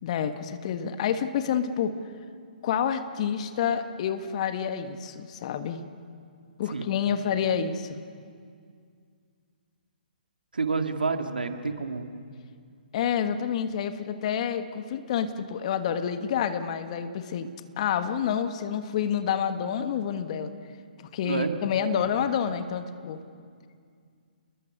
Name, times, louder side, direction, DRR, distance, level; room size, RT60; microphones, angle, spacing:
voice 1, 0.0-1.9 2.6-5.8 6.6-8.0 12.9-20.5 21.1-23.2, left 8 dB, 40° left, 9 dB, 1.4 m, -28 dB
voice 2, 10.5-12.1 21.2-21.5, right 4 dB, 75° right, 6 dB, 1.9 m, -28 dB
30.0 x 21.0 x 6.6 m, 2.2 s
figure-of-eight pair, 130°, 5 cm